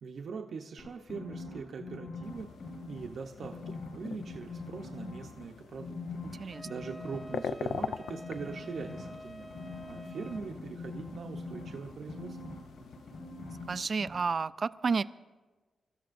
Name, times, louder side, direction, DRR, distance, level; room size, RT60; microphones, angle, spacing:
voice 1, 0.0-2.5 2.9-6.0 6.3-9.5 9.9-12.5, right 5 dB, 60° right, 2 dB, 0.8 m, -42 dB
sound 1, 0.8-3.1 3.4-5.4 5.8-7.2 8.1-13.7 14.0-14.2, left 3 dB, 60° left, 4.9 m, -43 dB
sound 2, 2.2-13.9, left 7 dB, 85° left, 0.4 m, -44 dB
voice 2, 6.3-6.7 13.7-15.0, right 5 dB, 40° right, 15 dB, 0.3 m, -31 dB
Wind instrument woodwind instrument, 6.5-10.5, equal, 5° left, 0.7 m, -49 dB
26.5 x 13.5 x 2.6 m, 1.3 s
wide cardioid pair, 150°, 0 cm